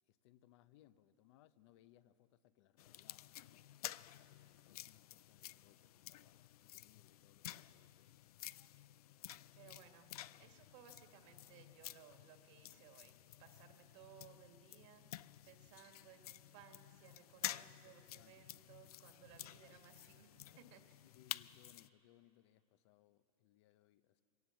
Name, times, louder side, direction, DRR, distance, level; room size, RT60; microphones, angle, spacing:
voice 1, 0.1-3.6 4.3-8.3 18.0-18.6 21.0-24.2, left 13 dB, 50° left, 14 dB, 0.8 m, -69 dB
sound 1, 2.8-21.9, left 13 dB, 80° left, 0.5 m, -51 dB
voice 2, 9.6-10.1 10.4-15.0 15.4-20.3 20.6-21.0, right 9 dB, 50° right, 5 dB, 2.2 m, -62 dB
23.0 x 17.5 x 7.2 m, 2.7 s
supercardioid pair, 145°, 19 cm